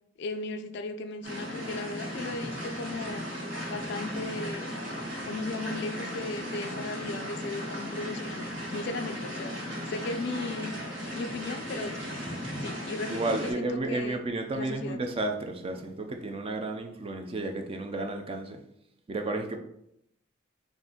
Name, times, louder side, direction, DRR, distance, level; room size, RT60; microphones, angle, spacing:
voice 1, 0.2-3.3 3.7-4.7 5.2-10.8 11.1-12.1 12.6-14.2 14.5-15.0, left 3 dB, 60° left, 0.3 m, -36 dB
sound 1, 1.2-13.5, equal, 70° right, 1.5 m, -36 dB
voice 2, 13.1-18.6 19.1-19.6, right 2 dB, 30° right, 0.4 m, -32 dB
3.9 x 2.5 x 3.5 m
head